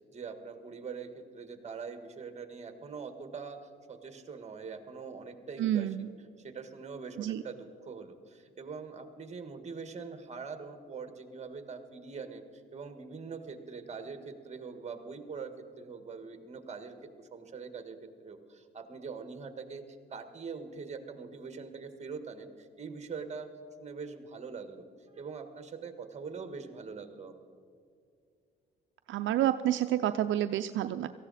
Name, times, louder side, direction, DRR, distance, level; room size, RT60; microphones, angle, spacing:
voice 1, 0.1-23.5 23.8-27.4, right 5 dB, 35° right, 8 dB, 1.6 m, -43 dB
voice 2, 5.6-6.1 7.2-7.4 29.1-31.1, right 12 dB, 75° right, 10 dB, 0.5 m, -29 dB
18.0 x 14.5 x 4.2 m, 2.3 s
cardioid pair, 90°, 20 cm